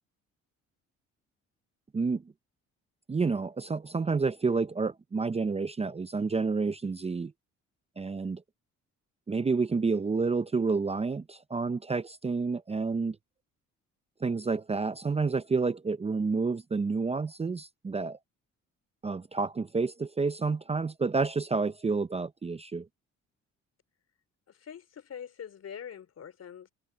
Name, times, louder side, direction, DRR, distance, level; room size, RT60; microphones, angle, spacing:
voice 1, 3.1-7.3 8.0-8.4 9.3-13.2 14.2-18.2 19.0-22.9, right 4 dB, 20° right, 0.6 m, -29 dB
voice 2, 24.5-26.7, left 8 dB, 55° left, 4.0 m, -44 dB
cardioid pair, 90°, 30 cm